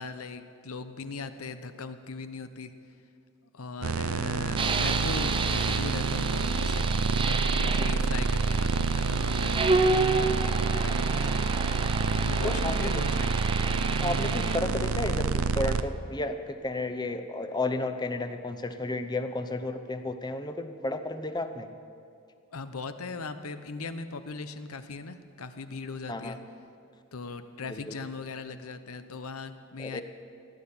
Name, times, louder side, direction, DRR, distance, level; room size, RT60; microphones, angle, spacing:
voice 1, 0.0-2.7 3.5-6.9 7.2-9.6 10.4-13.3 22.5-26.4 27.1-30.0, left 4 dB, 85° left, 10 dB, 0.8 m, -39 dB
sound 1, 3.8-15.8, right 4 dB, 75° right, 0.6 m, -28 dB
sound 2, 4.6-14.6, right 3 dB, 25° right, 0.6 m, -30 dB
voice 2, 7.8-8.1 12.4-13.1 14.0-21.7 26.1-26.4 27.7-28.0 29.8-30.0, left 2 dB, 20° left, 8 dB, 0.7 m, -33 dB
16.0 x 10.0 x 7.2 m, 2.5 s
head